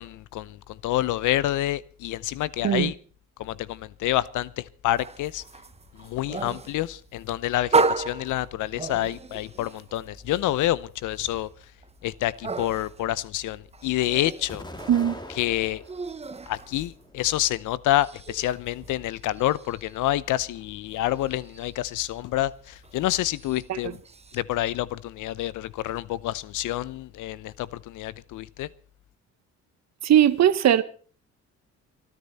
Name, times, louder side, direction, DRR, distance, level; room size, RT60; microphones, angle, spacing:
voice 1, 0.0-2.9 3.4-5.4 6.0-11.5 12.0-14.7 15.4-15.8 16.5-24.0 24.3-28.7, left 14 dB, 85° left, 0.8 m, -28 dB
sound 1, 5.0-17.5 17.7-24.4, right 4 dB, 20° right, 0.9 m, -34 dB
Explosion, 14.5-16.1 16.7-17.6, left 1 dB, 15° left, 2.5 m, -42 dB
voice 2, 14.9-15.2 23.7-23.9 30.0-30.8, right 10 dB, 60° right, 1.3 m, -19 dB
26.0 x 10.0 x 4.2 m
cardioid pair, 90°, 30 cm